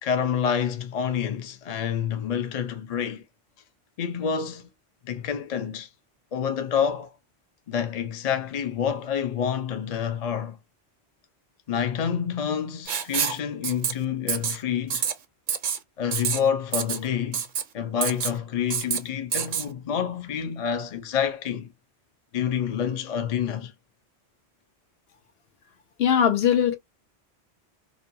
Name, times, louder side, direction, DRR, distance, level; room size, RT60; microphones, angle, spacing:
voice 1, 0.0-3.2 4.0-4.7 5.0-5.9 6.3-7.1 7.7-10.6 11.7-15.0 16.0-17.4 17.7-21.7 22.3-23.7, left 8 dB, 45° left, 0.5 m, -28 dB
Writing, 12.9-13.4 13.6-13.9 14.3-14.6 14.9-15.1 15.5-15.8 16.1-16.4 16.7-17.0 17.3-17.6 18.0-18.3 18.7-19.0 19.3-19.6, right 7 dB, 55° right, 0.6 m, -26 dB
voice 2, 26.0-26.8, left 9 dB, 70° left, 0.9 m, -20 dB
2.5 x 2.2 x 2.6 m
omnidirectional pair, 1.1 m